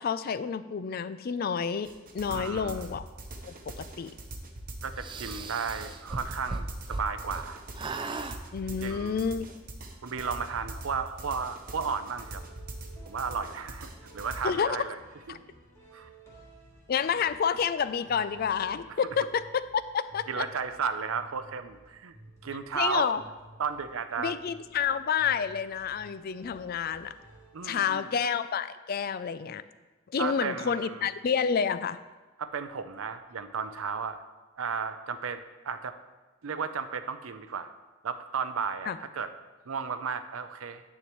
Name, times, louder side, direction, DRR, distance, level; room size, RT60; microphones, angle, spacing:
voice 1, 0.0-3.0 3.4-4.1 8.5-9.5 14.4-14.8 15.3-15.4 16.9-20.4 22.8-23.2 24.2-27.1 27.6-29.6 30.1-32.0 38.9-39.0, left 7 dB, 45° left, 14 dB, 0.3 m, -29 dB
sound 1, 1.8-14.4, right 1 dB, 45° right, 0.9 m, -43 dB
voice 2, 2.3-2.8 4.8-7.6 8.8-9.2 10.0-12.4 13.1-15.0 15.3-15.4 15.9-16.1 18.9-19.0 20.3-22.1 22.4-23.1 23.6-24.4 27.5-28.1 30.2-31.1 32.4-34.2 34.6-36.0 36.4-37.7 38.0-39.3 39.7-40.8, right 6 dB, 85° right, 10 dB, 0.6 m, -34 dB
sound 2, 5.0-7.5 7.7-8.4, right 3 dB, 25° right, 0.4 m, -37 dB
sound 3, 10.2-28.0, right 1 dB, 15° left, 1.6 m, -55 dB
9.8 x 8.8 x 3.0 m, 1.2 s
head